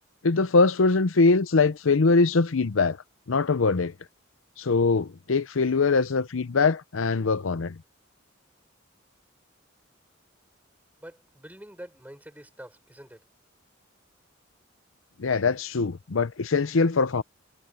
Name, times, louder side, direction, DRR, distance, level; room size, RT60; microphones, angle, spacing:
voice 1, 0.2-3.0 3.3-3.9 4.6-7.8 15.2-17.2, left 4 dB, 90° left, 0.7 m, -22 dB
voice 2, 11.0-13.2, right 1 dB, 10° right, 4.7 m, -46 dB
head